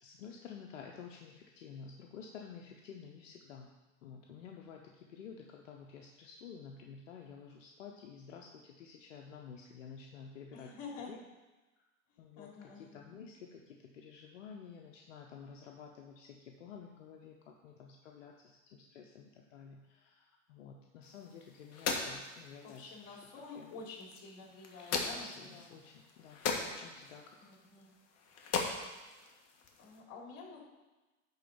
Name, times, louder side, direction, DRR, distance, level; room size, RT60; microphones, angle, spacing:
voice 1, 0.0-3.7 4.0-10.7 11.1-11.2 11.8-11.9 12.2-23.8 24.9-27.4, left 6 dB, 90° left, 1 dB, 0.9 m, -51 dB
voice 2, 10.5-11.1 12.1-12.9 22.6-25.7 27.4-27.9 29.8-30.6, left 4 dB, 60° left, -2 dB, 3.3 m, -49 dB
sound 1, 21.0-30.0, left 4 dB, 40° left, 1.6 m, -41 dB
10.5 x 4.0 x 7.0 m, 1.2 s
hypercardioid pair, 100°, 37 cm